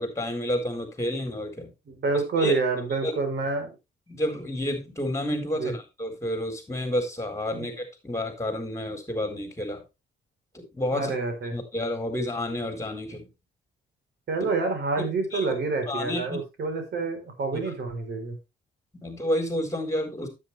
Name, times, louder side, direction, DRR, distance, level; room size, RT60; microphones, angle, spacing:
voice 1, 0.0-1.7 2.4-2.5 3.0-3.1 4.1-9.8 10.7-11.1 11.5-13.3 15.0-15.1 15.3-15.5 15.9-16.4 17.5-17.6 19.0-20.3, left 1 dB, 15° left, 6 dB, 4.2 m, -30 dB
voice 2, 1.9-3.8 5.5-5.7 7.5-7.7 10.9-11.6 14.3-18.4, right 3 dB, 60° right, 6 dB, 4.0 m, -28 dB
9.8 x 8.8 x 3.3 m, 0.25 s
cardioid pair, 90°, 20 cm